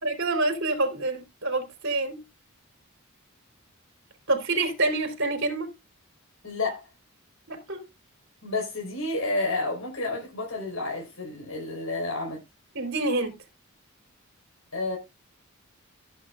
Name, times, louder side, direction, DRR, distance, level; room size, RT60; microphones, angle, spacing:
voice 1, 0.0-2.2 4.3-5.7 7.5-7.8 12.7-13.3, right 2 dB, 60° right, 3.7 m, -27 dB
voice 2, 6.4-6.8 8.4-12.4 14.7-15.0, left 2 dB, 80° left, 4.8 m, -30 dB
15.5 x 8.1 x 2.5 m
head